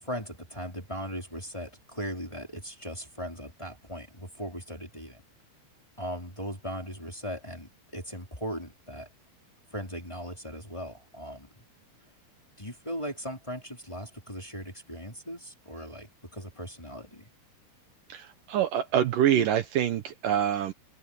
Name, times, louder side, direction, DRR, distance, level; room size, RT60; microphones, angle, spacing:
voice 1, 0.0-5.2 6.0-9.1 9.7-11.5 12.6-17.3, equal, 5° left, 3.5 m, -38 dB
voice 2, 18.1-20.7, right 10 dB, 90° right, 1.9 m, -25 dB
open air
omnidirectional pair, 5.4 m